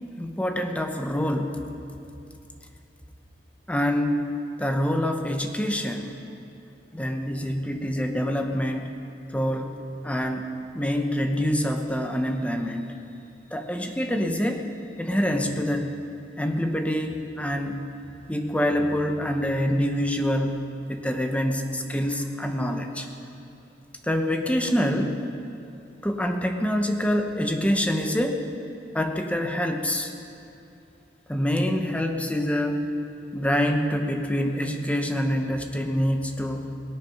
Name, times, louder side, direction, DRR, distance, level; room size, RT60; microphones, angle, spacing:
voice 1, 0.2-1.6 3.7-4.3 4.6-6.1 6.9-9.0 9.3-9.7 10.0-10.4 10.7-12.9 13.5-14.6 15.0-16.0 16.4-17.9 18.3-20.6 20.9-23.1 24.0-25.2 26.0-28.4 28.9-30.1 31.3-32.9 33.3-36.7, equal, 5° left, 4 dB, 0.9 m, -26 dB
18.0 x 9.1 x 5.8 m, 2.7 s
head